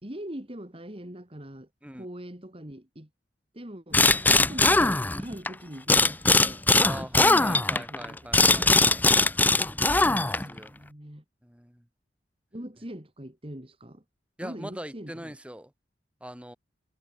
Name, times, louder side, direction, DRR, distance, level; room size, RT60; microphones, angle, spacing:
voice 1, 0.0-3.1 3.5-4.0 4.3-6.6 6.9-8.2 9.9-11.2 12.5-14.0 14.4-15.4, right 1 dB, 30° right, 2.6 m, -42 dB
sound 1, 3.9-5.5 5.9-10.6, left 3 dB, 10° left, 0.5 m, -21 dB
voice 2, 6.8-9.0 9.8-10.8 11.4-11.8 14.4-15.7 16.2-16.6, right 1 dB, 5° right, 6.3 m, -41 dB
head